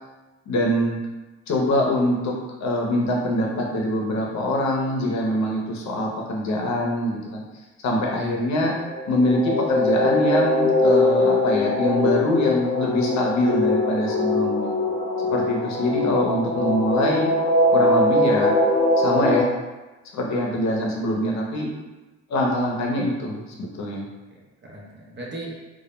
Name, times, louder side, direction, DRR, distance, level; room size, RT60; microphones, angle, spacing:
voice 1, 0.5-1.0 1.5-2.3 2.6-7.4 7.8-8.7 9.1-14.7 15.3-17.3 17.7-18.5 19.0-19.5 20.1-21.7 22.3-24.0, left 1 dB, 65° left, -1 dB, 0.6 m, -24 dB
voice 2, 7.9-8.4 24.3-25.6, right 2 dB, 40° right, -3 dB, 0.7 m, -38 dB
sound 1, 8.7-19.4, left 2 dB, 25° left, 0.8 m, -21 dB
2.3 x 2.0 x 3.0 m, 1.1 s
cardioid pair, 90°, 30 cm